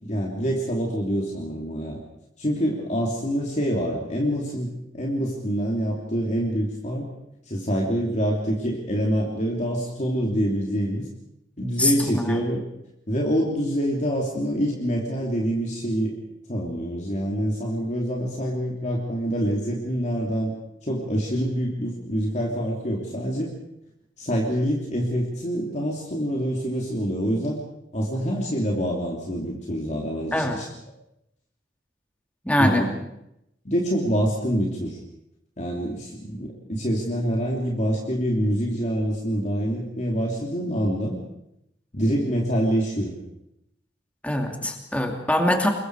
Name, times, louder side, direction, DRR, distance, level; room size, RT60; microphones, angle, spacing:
voice 1, 0.0-2.0 2.4-7.1 7.4-11.1 11.6-12.6 13.1-16.1 16.5-20.5 20.8-23.5 24.2-27.6 27.9-30.7 32.6-32.9 33.6-35.0 35.6-41.2 41.9-43.2, equal, 40° left, -2 dB, 3.2 m, -26 dB
voice 2, 11.8-12.4 30.3-30.6 32.4-32.8 44.2-45.7, left 1 dB, 10° left, 3 dB, 2.6 m, -23 dB
27.5 x 22.0 x 4.9 m, 0.82 s
head